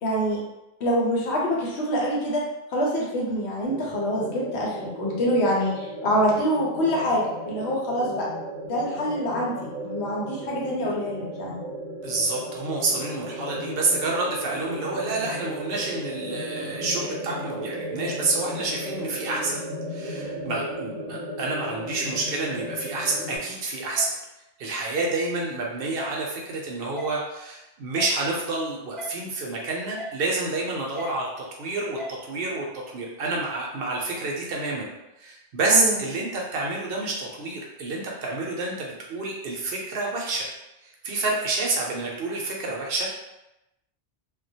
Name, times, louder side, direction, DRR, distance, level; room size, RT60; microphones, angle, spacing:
voice 1, 0.0-0.4 0.8-2.4 2.7-8.2 8.7-11.6 35.7-36.0, equal, 85° left, -4 dB, 1.0 m, -25 dB
sound 1, 3.6-23.4, equal, 35° right, 0.7 m, -35 dB
voice 2, 12.0-19.6 19.9-24.1 24.6-32.7 32.9-34.9 35.2-40.5 40.8-43.1, right 3 dB, 70° right, -2 dB, 0.8 m, -28 dB
sound 2, 24.0-24.1 25.0-25.1 26.0-26.1 27.0-27.1 28.0-28.1 29.0-29.1 30.0-30.1 31.0-31.1 32.0-32.1, left 2 dB, ahead, 0.4 m, -35 dB
2.3 x 2.1 x 2.7 m, 0.92 s
omnidirectional pair, 1.1 m